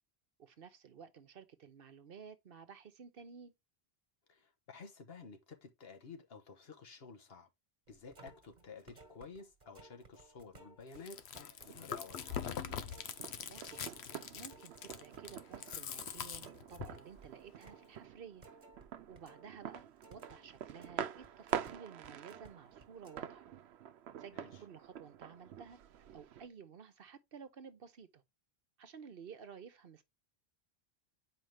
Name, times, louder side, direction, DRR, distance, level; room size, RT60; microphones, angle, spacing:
voice 1, 0.4-3.5 13.5-18.4 19.1-19.8 20.1-23.4 24.2-25.8 26.1-28.2 28.8-30.0, right 6 dB, 65° right, 1.0 m, -53 dB
voice 2, 4.3-7.5 7.9-11.2 11.6-12.4 24.3-24.5, left 4 dB, 70° left, 1.4 m, -52 dB
sound 1, 7.9-19.5 19.8-22.5 22.8-23.2, right 3 dB, 45° right, 1.5 m, -59 dB
Chewing mastication, 10.9-17.0, left 8 dB, 85° left, 1.0 m, -43 dB
sound 2, 11.6-26.5, right 9 dB, 85° right, 0.9 m, -47 dB
7.6 x 5.0 x 3.3 m
omnidirectional pair, 1.1 m